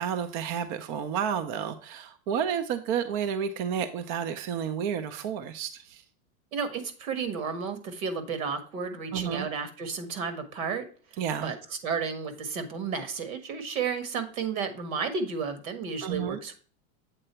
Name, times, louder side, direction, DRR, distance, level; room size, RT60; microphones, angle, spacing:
voice 1, 0.0-6.0 9.1-9.5 11.2-11.5 16.0-16.4, right 8 dB, 35° right, 9 dB, 0.5 m, -31 dB
voice 2, 6.5-10.9 11.4-11.6 11.8-16.6, right 5 dB, 80° right, 9 dB, 1.7 m, -32 dB
7.9 x 3.8 x 4.3 m, 0.42 s
supercardioid pair, 150°, 41 cm